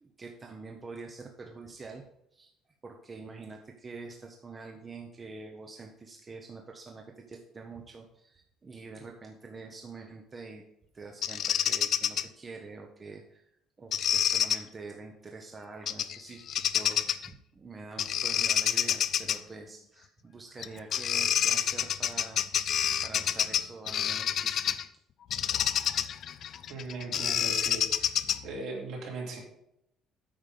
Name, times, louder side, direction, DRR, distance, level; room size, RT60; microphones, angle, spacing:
voice 1, 0.0-2.0 2.3-2.5 2.8-10.6 10.9-13.4 13.8-24.7, right 3 dB, 20° right, 2 dB, 0.8 m, -46 dB
Bird vocalization bird call bird song, 11.2-12.2 13.9-14.6 15.9-16.2 16.5-17.3 18.0-19.4 20.6-20.7 20.9-24.8 25.3-28.6, left 9 dB, 45° left, 0.4 m, -28 dB
voice 2, 26.7-28.1 28.4-29.4, right 3 dB, 65° right, -2 dB, 3.3 m, -38 dB
8.9 x 5.3 x 6.6 m, 0.76 s
cardioid pair, 160°, 0 cm